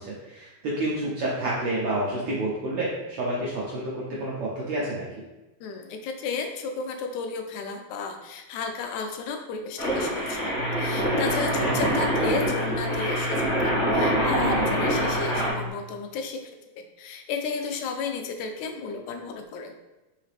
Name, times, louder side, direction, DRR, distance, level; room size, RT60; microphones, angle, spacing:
voice 1, 0.0-5.1 11.6-11.9, right 1 dB, 75° right, -6 dB, 1.3 m, -29 dB
voice 2, 5.6-16.4 16.8-19.7, left 5 dB, 85° left, 5 dB, 1.9 m, -33 dB
sound 1, 9.8-15.5, equal, 60° left, 2.2 m, -25 dB
sound 2, 10.5-15.7, left 2 dB, 40° right, 1.5 m, -34 dB
4.9 x 2.9 x 3.3 m, 1.1 s
omnidirectional pair, 3.4 m